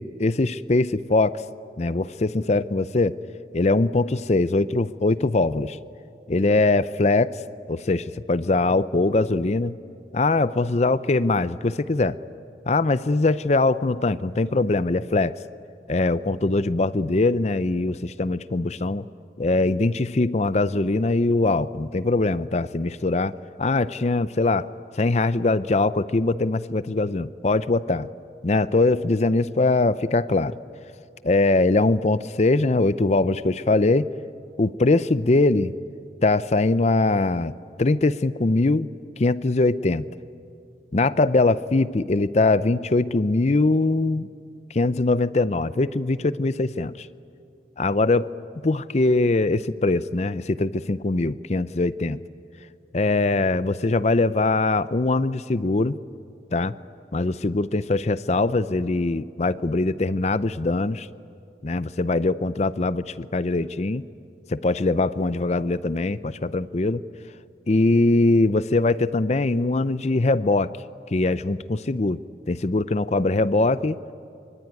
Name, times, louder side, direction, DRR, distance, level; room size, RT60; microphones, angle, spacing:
voice 1, 0.0-1.4 1.8-3.1 3.5-5.8 6.3-7.4 7.7-9.7 10.1-12.2 12.7-15.4 15.9-19.0 19.4-24.7 25.0-28.1 28.4-30.6 31.2-34.1 34.6-35.7 36.2-37.5 37.8-38.9 39.2-40.1 40.9-44.3 44.7-47.1 47.8-48.3 48.6-52.2 52.9-56.0 56.5-56.8 57.1-61.1 61.6-64.0 64.5-67.0 67.7-70.7 71.1-72.2 72.5-74.1, left 2 dB, 40° left, 15 dB, 0.6 m, -22 dB
25.5 x 24.0 x 9.3 m, 2.5 s
head